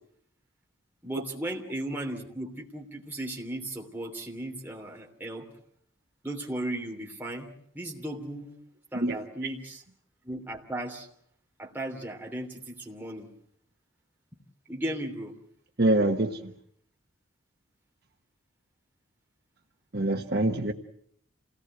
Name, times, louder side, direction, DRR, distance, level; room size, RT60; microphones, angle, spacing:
voice 1, 1.0-5.5 6.2-7.5 7.7-8.5 8.9-9.8 10.2-11.1 11.6-13.3 14.7-15.3, right 1 dB, 10° right, 3.1 m, -36 dB
voice 2, 15.8-16.5 19.9-20.7, right 1 dB, 50° right, 1.2 m, -25 dB
28.0 x 18.0 x 7.9 m
head